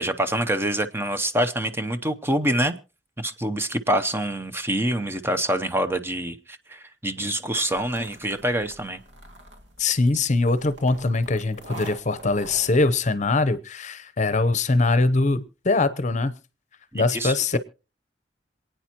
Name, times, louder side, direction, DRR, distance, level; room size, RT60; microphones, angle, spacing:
voice 1, 0.0-2.7 3.2-9.0 17.1-17.6, right 1 dB, 15° right, 9 dB, 0.7 m, -26 dB
sound 1, 7.7-13.0, right 1 dB, 80° right, 2.4 m, -44 dB
voice 2, 9.8-16.3 16.9-17.6, left 3 dB, 40° left, 15 dB, 0.8 m, -22 dB
27.0 x 9.2 x 2.9 m, 0.34 s
head